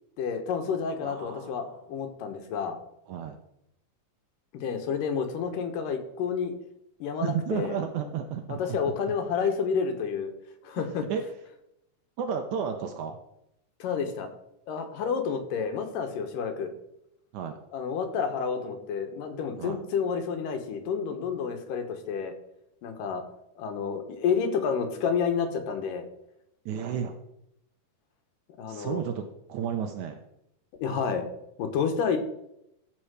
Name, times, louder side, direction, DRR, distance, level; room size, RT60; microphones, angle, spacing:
voice 1, 0.2-2.8 4.5-6.5 7.0-7.7 8.5-10.3 10.6-11.1 13.8-14.3 14.7-16.7 17.7-22.3 22.8-23.2 23.6-26.1 28.6-29.0 30.8-31.3 31.6-32.2, left 6 dB, 85° left, 6 dB, 2.8 m, -30 dB
voice 2, 1.0-1.8 3.1-3.4 7.2-8.9 10.8-11.2 12.2-13.2 17.3-17.5 19.6-19.8 26.7-27.1 28.7-30.2, right 7 dB, 75° right, 6 dB, 2.0 m, -32 dB
13.0 x 4.4 x 6.3 m, 0.80 s
omnidirectional pair, 3.8 m